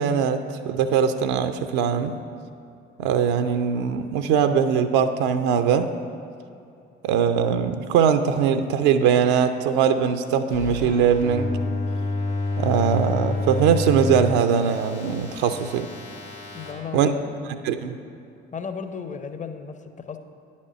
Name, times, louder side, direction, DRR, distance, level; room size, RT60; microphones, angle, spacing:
voice 1, 0.0-2.1 3.0-5.9 7.0-11.5 12.6-15.9 16.9-17.1 17.6-18.0, right 7 dB, 65° right, 8 dB, 0.5 m, -21 dB
sound 1, 10.5-16.7, left 2 dB, 85° left, 1.7 m, -29 dB
voice 2, 16.5-17.8 18.5-20.2, left 6 dB, 25° left, 9 dB, 0.6 m, -35 dB
9.8 x 4.3 x 6.2 m, 2.6 s
figure-of-eight pair, 55°, 32 cm